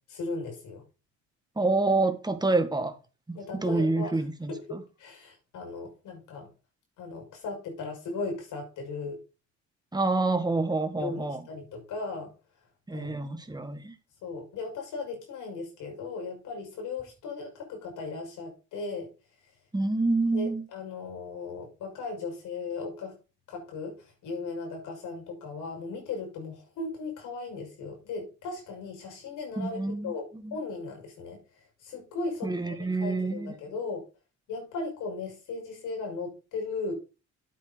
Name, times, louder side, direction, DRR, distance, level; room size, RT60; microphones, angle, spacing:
voice 1, 0.1-0.8 3.3-6.5 7.0-9.2 11.0-12.3 12.9-13.1 14.2-19.1 20.3-23.2 23.5-29.8 30.0-34.1 34.5-36.9, left 3 dB, 85° left, 5.9 m, -37 dB
voice 2, 1.6-2.9 3.3-4.8 9.9-11.4 12.9-14.0 19.7-20.6 29.6-30.1 30.4-30.5 32.4-33.5, right 3 dB, 15° right, 1.9 m, -27 dB
10.0 x 8.4 x 4.1 m
cardioid pair, 90°, 30 cm